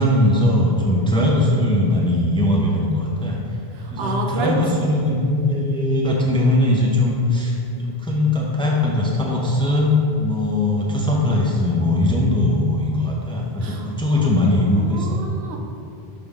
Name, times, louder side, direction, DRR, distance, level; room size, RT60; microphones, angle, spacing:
voice 1, 0.0-3.4 3.9-7.6 7.8-15.2, left 1 dB, 5° left, -3 dB, 0.5 m, -20 dB
voice 2, 3.7-4.8 13.6-13.9 14.2-14.3 14.7-15.6, right 3 dB, 80° right, 1 dB, 1.0 m, -28 dB
5.6 x 5.1 x 3.6 m, 2.6 s
omnidirectional pair, 1.0 m